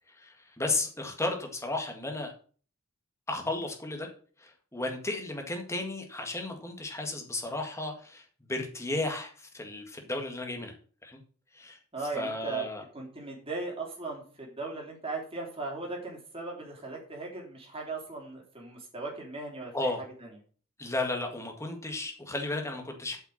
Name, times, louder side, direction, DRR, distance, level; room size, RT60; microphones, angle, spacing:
voice 1, 0.2-2.3 3.3-4.1 4.4-8.2 8.5-10.7 11.0-11.2 11.5-11.8 12.2-12.8 19.7-20.0 20.8-23.2, left 2 dB, 15° left, 3 dB, 1.7 m, -34 dB
voice 2, 11.9-12.7 12.9-19.9 20.2-20.4, right 3 dB, 25° right, -1 dB, 3.3 m, -38 dB
8.2 x 5.9 x 7.1 m, 0.42 s
head